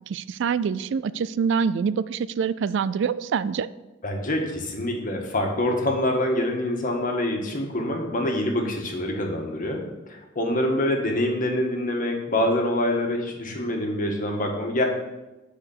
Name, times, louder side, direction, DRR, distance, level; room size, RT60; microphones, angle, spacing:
voice 1, 0.1-3.7, right 6 dB, 65° right, 16 dB, 0.3 m, -25 dB
voice 2, 4.0-14.8, left 1 dB, 45° left, 2 dB, 1.7 m, -25 dB
9.6 x 4.9 x 7.2 m, 1.0 s
head